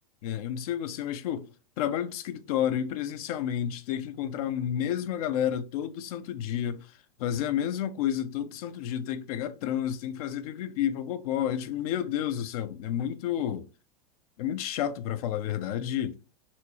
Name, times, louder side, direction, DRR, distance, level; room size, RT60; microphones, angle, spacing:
voice 1, 0.2-6.9 7.2-13.7 14.4-16.2, left 10 dB, 65° left, 0.5 m, -30 dB
4.2 x 2.3 x 3.0 m
supercardioid pair, 150°, 20 cm